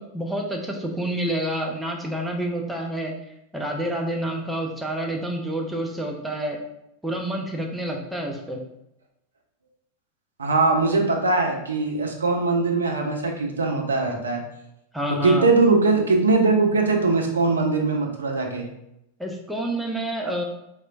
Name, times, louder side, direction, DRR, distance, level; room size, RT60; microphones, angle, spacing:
voice 1, 0.0-3.1 3.5-6.6 7.0-8.6 14.9-15.5 19.2-20.4, right 1 dB, 5° right, 0 dB, 0.4 m, -28 dB
voice 2, 10.4-14.4 15.2-18.7, right 3 dB, 70° right, 2 dB, 0.4 m, -21 dB
3.0 x 2.0 x 2.4 m, 0.83 s
figure-of-eight pair, 90°, 0 cm